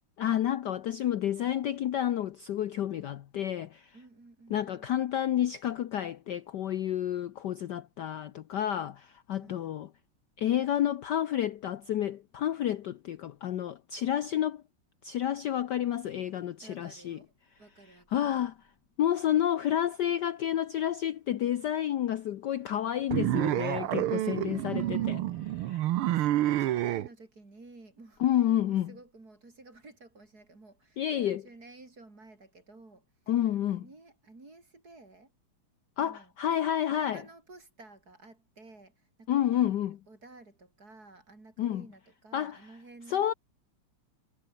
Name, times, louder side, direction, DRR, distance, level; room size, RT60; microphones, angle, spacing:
voice 1, 0.2-3.9 4.5-9.9 10.4-14.6 15.0-17.2 18.1-18.5 19.0-25.2 25.6-25.8 28.2-28.9 31.0-31.4 33.3-33.8 36.0-37.2 39.3-40.0 41.6-41.8 42.3-42.6 43.1-43.3, left 11 dB, 60° left, 1.2 m, -30 dB
voice 2, 3.9-4.9 9.3-9.8 16.6-17.3 17.6-18.4 23.5-25.2 26.1-28.2 28.6-35.3 36.0-36.3 36.9-39.4 40.1-43.3, right 2 dB, 40° right, 5.3 m, -53 dB
sound 1, 23.1-27.1, right 13 dB, 75° right, 1.7 m, -28 dB
omnidirectional pair, 2.4 m